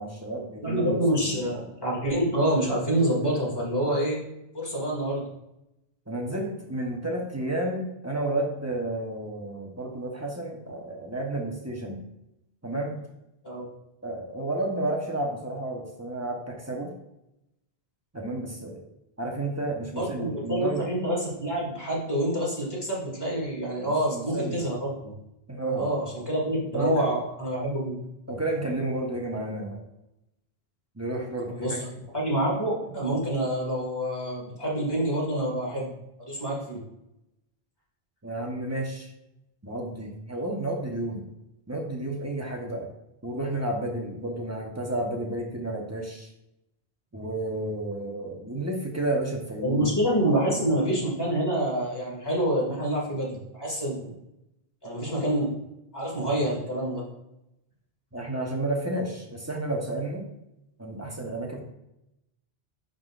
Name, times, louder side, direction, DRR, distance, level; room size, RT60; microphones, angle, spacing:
voice 1, 0.0-1.4 6.1-12.0 12.6-13.0 14.0-16.9 18.1-18.8 19.2-20.8 23.8-24.6 25.5-25.9 26.7-27.1 28.3-29.8 30.9-31.8 38.2-39.1 39.6-41.2 41.7-42.9 43.2-46.3 47.1-50.7 58.1-60.2 60.8-61.6, right 2 dB, 15° right, -1 dB, 0.8 m, -31 dB
voice 2, 0.6-4.2 4.5-5.2 13.4-13.7 19.9-25.1 25.8-28.0 31.5-31.8 32.1-35.9 36.2-36.8 49.6-54.1 54.8-55.5 55.9-57.0, right 1 dB, 20° left, -4 dB, 2.0 m, -27 dB
10.5 x 3.8 x 2.5 m, 0.87 s
omnidirectional pair, 1.1 m